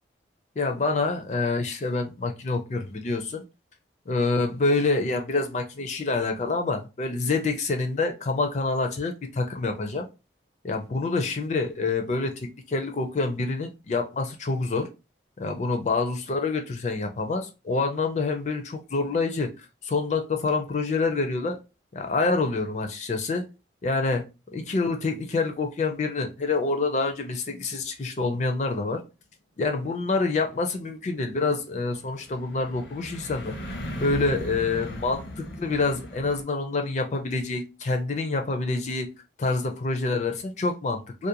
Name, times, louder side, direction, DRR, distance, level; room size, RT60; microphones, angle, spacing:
voice 1, 0.6-3.4 4.1-10.1 10.6-14.9 15.4-21.6 21.9-23.4 23.8-24.2 24.5-29.0 29.6-39.1 39.4-41.3, left 3 dB, 40° left, 0.4 m, -27 dB
sound 1, 30.5-36.4, equal, 80° left, 0.7 m, -38 dB
2.4 x 2.1 x 2.7 m
head